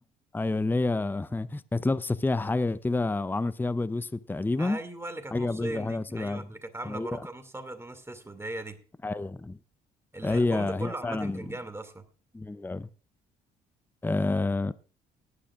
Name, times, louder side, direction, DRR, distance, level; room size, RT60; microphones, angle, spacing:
voice 1, 0.3-4.8 5.3-6.5 6.8-7.2 9.0-9.6 10.2-11.4 12.3-12.9 14.0-14.7, left 2 dB, 10° left, 0.6 m, -28 dB
voice 2, 4.6-8.8 10.1-12.1, right 2 dB, 15° right, 2.4 m, -38 dB
18.0 x 11.0 x 2.4 m
hypercardioid pair, 55°, 20 cm